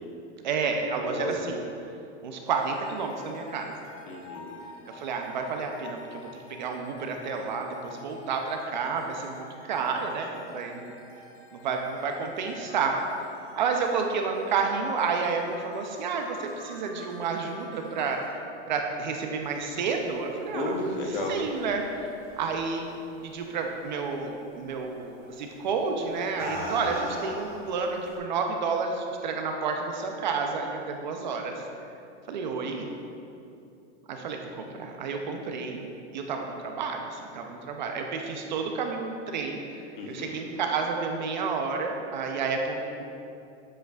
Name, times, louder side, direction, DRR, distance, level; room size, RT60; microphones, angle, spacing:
voice 1, 0.4-1.6 2.2-3.7 4.9-6.2 6.5-10.9 11.5-13.0 13.6-18.2 18.7-20.8 21.3-21.8 22.4-22.9 23.2-31.6 32.3-32.9 34.1-35.8 36.1-43.0, right 5 dB, 40° right, 3 dB, 0.5 m, -30 dB
voice 2, 1.0-1.5 4.1-4.6 20.5-21.4 26.8-27.2 39.9-40.5, left 1 dB, 45° left, 1 dB, 0.9 m, -33 dB
sound 1, 2.5-19.6, left 3 dB, 70° left, 1.4 m, -48 dB
sound 2, 20.3-23.2 23.5-24.0 25.2-25.4 26.0-28.2, right 1 dB, 5° right, 1.3 m, -39 dB
7.8 x 7.5 x 2.3 m, 2.7 s
supercardioid pair, 180°, 35 cm